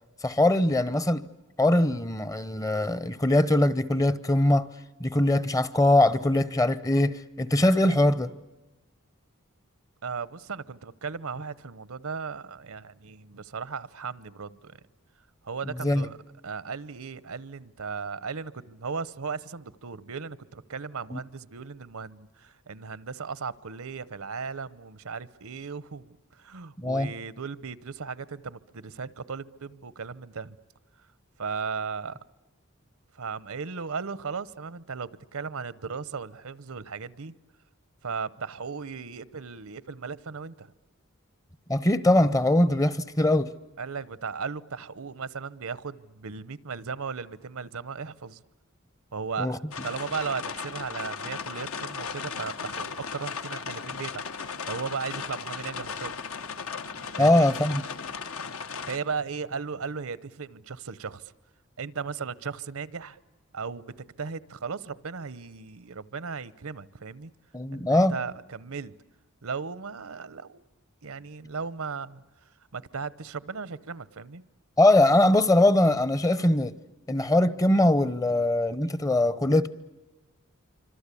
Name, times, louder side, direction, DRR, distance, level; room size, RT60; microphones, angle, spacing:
voice 1, 0.2-1.2 1.6-4.7 5.0-8.3 15.8-16.1 21.1-21.2 26.8-27.1 41.7-43.5 49.4-49.6 57.2-57.9 67.5-68.1 74.8-76.7 77.1-79.7, left 1 dB, 15° left, 0.8 m, -22 dB
voice 2, 10.0-14.8 15.4-16.2 16.4-30.6 31.4-32.1 33.1-37.3 38.0-40.7 43.8-48.4 49.1-54.2 54.6-56.1 57.2-57.5 58.9-61.2 61.8-63.2 63.5-67.3 67.7-68.9 69.4-70.6 71.0-72.2 72.7-74.4, right 5 dB, 75° right, 0.9 m, -36 dB
sound 1, 49.7-59.0, left 5 dB, 70° left, 1.4 m, -36 dB
26.5 x 25.5 x 8.4 m
head